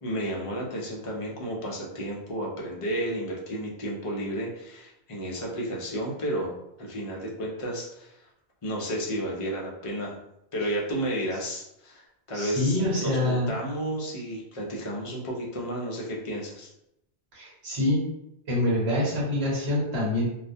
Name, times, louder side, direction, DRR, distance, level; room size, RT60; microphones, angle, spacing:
voice 1, 0.0-6.5 6.8-8.2 8.6-10.2 10.5-16.7, equal, 40° left, -3 dB, 0.5 m, -32 dB
voice 2, 12.3-13.5 17.3-18.0 18.5-20.3, left 1 dB, 70° right, -4 dB, 1.1 m, -25 dB
2.3 x 2.1 x 2.6 m, 0.81 s
omnidirectional pair, 1.1 m